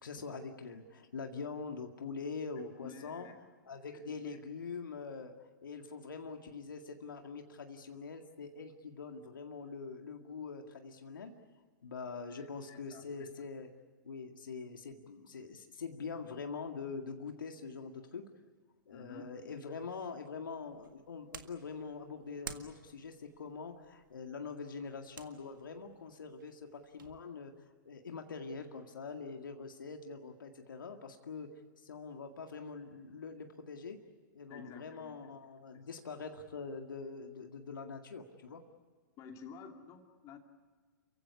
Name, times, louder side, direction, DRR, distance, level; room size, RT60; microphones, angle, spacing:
voice 1, 0.0-3.3 3.6-5.3 5.6-11.3 11.8-13.7 14.0-18.2 18.9-27.5 27.9-34.0 34.3-38.6, left 5 dB, 70° left, 4 dB, 2.0 m, -44 dB
voice 2, 2.6-3.3 3.9-4.4 12.3-13.3 18.9-19.3 34.5-35.3 39.2-40.4, left 6 dB, 30° left, 4 dB, 2.7 m, -52 dB
sound 1, 20.4-27.2, right 6 dB, 70° right, 1.8 m, -53 dB
30.0 x 15.5 x 9.7 m, 1.5 s
figure-of-eight pair, 115°, 11 cm